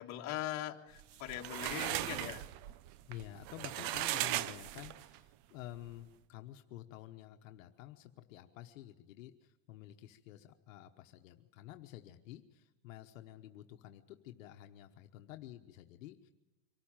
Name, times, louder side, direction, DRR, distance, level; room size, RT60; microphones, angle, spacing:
voice 1, 0.0-2.5, left 13 dB, 45° left, 2 dB, 1.8 m, -41 dB
sound 1, 1.0-5.2, right 14 dB, 50° right, 0.7 m, -38 dB
voice 2, 3.1-16.3, left 13 dB, 80° left, 6 dB, 1.1 m, -51 dB
24.0 x 13.5 x 9.0 m, 1.1 s
supercardioid pair, 135°, 39 cm